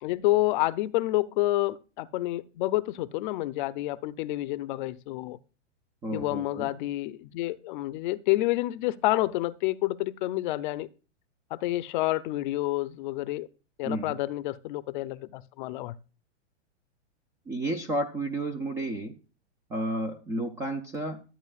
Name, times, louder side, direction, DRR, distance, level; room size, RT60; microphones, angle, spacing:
voice 1, 0.0-5.4 6.1-10.9 11.5-13.5 13.8-16.0, left 17 dB, 40° left, 0.6 m, -29 dB
voice 2, 6.0-6.7 13.8-14.2 17.5-19.2 19.7-21.2, right 1 dB, 10° right, 0.3 m, -32 dB
13.0 x 8.9 x 2.3 m
hypercardioid pair, 135°, 36 cm